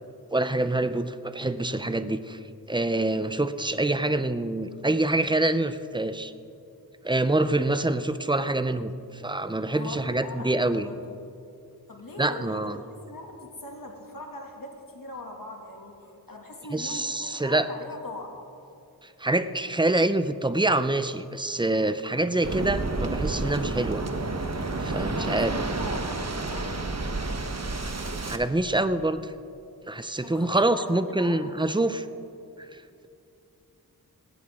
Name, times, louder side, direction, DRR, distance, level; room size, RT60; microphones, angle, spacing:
voice 1, 0.3-2.4 2.7-6.3 7.0-10.9 12.2-12.8 16.7-17.7 19.0-24.0 24.8-25.5 28.3-29.3 29.9-32.0 32.7-33.1, right 2 dB, 10° right, 11 dB, 0.6 m, -26 dB
voice 2, 9.7-11.0 11.9-18.3 25.0-26.9 30.2-32.1, left 2 dB, 60° left, 1 dB, 2.4 m, -41 dB
Waves surf, 22.4-28.4, right 3 dB, 45° right, 1.2 m, -30 dB
19.0 x 17.5 x 3.7 m, 2.6 s
wide cardioid pair, 85°, 38 cm